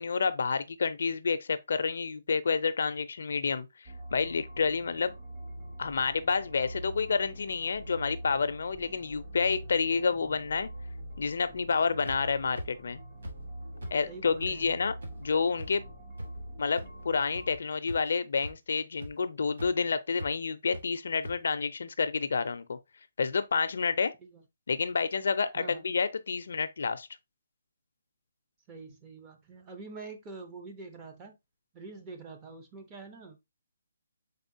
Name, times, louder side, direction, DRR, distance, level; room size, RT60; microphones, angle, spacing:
voice 1, 0.0-5.1 5.8-10.7 11.2-13.0 13.9-15.8 16.6-22.8 23.2-24.1 24.7-27.1, left 5 dB, 65° left, 0.4 m, -29 dB
sound 1, 3.9-17.6, right 1 dB, 35° right, 1.2 m, -44 dB
sound 2, 12.1-12.2 12.6-12.7 13.2-13.3 13.8-13.9 14.4-14.5 15.0-15.1 15.6-15.7 16.2-16.3 16.8-16.9 17.3-17.4 17.8-18.1 18.4-18.5 19.0-19.1 19.6-19.7 20.2-20.3 20.7-20.8 21.2-21.3, equal, 85° right, 1.5 m, -39 dB
voice 2, 14.1-14.7 24.2-24.4 25.5-25.8 28.7-31.4 31.7-33.4, right 4 dB, 15° right, 0.6 m, -46 dB
4.0 x 3.6 x 2.6 m
hypercardioid pair, 165°, 0 cm